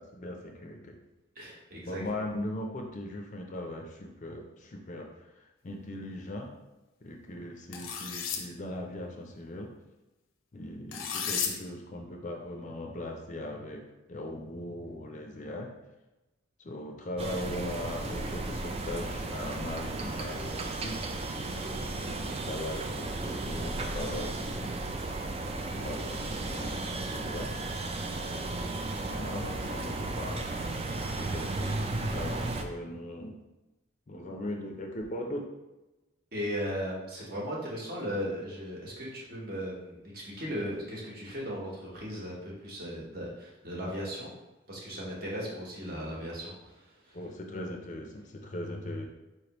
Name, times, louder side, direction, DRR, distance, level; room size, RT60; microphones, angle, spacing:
voice 1, 0.1-0.9 1.9-6.5 7.0-9.7 10.5-13.8 14.1-15.7 16.6-21.0 21.6-24.7 25.7-27.5 28.7-30.4 31.2-31.8 32.1-33.4 34.1-35.5 47.1-49.0, left 1 dB, 35° left, 2 dB, 0.5 m, -39 dB
voice 2, 1.4-2.0 36.3-44.3 44.7-47.2, equal, 45° right, -4 dB, 1.1 m, -37 dB
sound 1, 7.7-8.4 10.9-11.5, left 7 dB, 85° left, 0.6 m, -32 dB
sound 2, 17.2-32.6, right 2 dB, 30° right, 0.3 m, -34 dB
4.5 x 3.3 x 2.9 m, 1.0 s
head